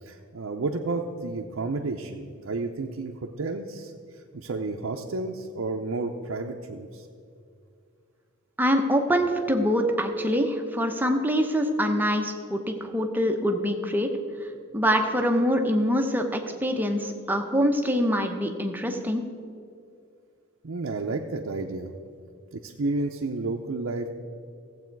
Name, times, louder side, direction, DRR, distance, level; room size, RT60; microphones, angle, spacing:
voice 1, 0.0-7.1 20.6-21.9 22.5-24.1, right 3 dB, 65° right, 1 dB, 0.6 m, -31 dB
voice 2, 8.6-14.1 14.4-14.5 14.7-19.2, equal, 10° right, 4 dB, 0.8 m, -24 dB
15.5 x 7.7 x 4.6 m, 2.4 s
head